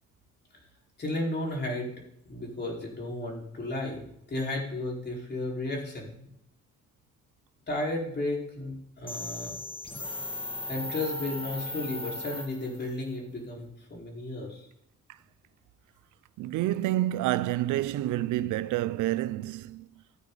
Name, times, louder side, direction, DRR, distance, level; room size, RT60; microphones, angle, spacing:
voice 1, 1.0-1.9 2.3-6.3 7.7-9.5 10.7-14.7, left 2 dB, 35° left, 4.5 m, -33 dB
sound 1, 9.1-12.9, left 2 dB, 15° left, 1.3 m, -37 dB
voice 2, 16.4-19.9, right 15 dB, 85° right, 0.5 m, -28 dB
15.5 x 9.0 x 4.0 m
cardioid pair, 90°, 30 cm